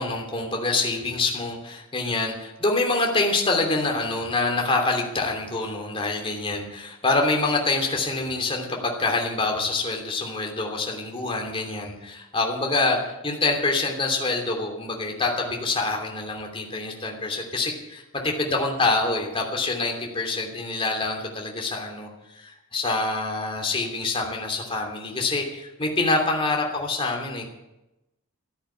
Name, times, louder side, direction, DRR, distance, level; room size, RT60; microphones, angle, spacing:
voice 1, 0.0-22.1 22.4-27.5, left 3 dB, 25° left, 1 dB, 3.0 m, -26 dB
13.5 x 10.0 x 8.8 m, 0.92 s
head